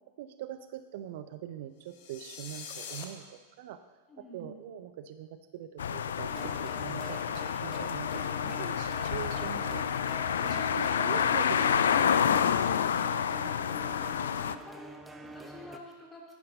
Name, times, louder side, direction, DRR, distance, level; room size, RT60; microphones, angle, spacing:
voice 1, 0.2-3.8 4.2-8.1 8.4-9.8 10.4-12.5, right 11 dB, 50° right, 11 dB, 0.5 m, -43 dB
sound 1, 1.9-3.0, left 7 dB, 50° left, 1.3 m, -43 dB
voice 2, 4.1-4.6 13.9-14.9 15.2-16.2, left 1 dB, 15° left, -1 dB, 2.6 m, -49 dB
sound 2, 5.8-14.6, left 8 dB, 65° left, 0.4 m, -29 dB
sound 3, 6.3-15.8, right 1 dB, 5° right, 0.9 m, -45 dB
10.5 x 9.7 x 5.3 m, 1.3 s
figure-of-eight pair, 90°, 0 cm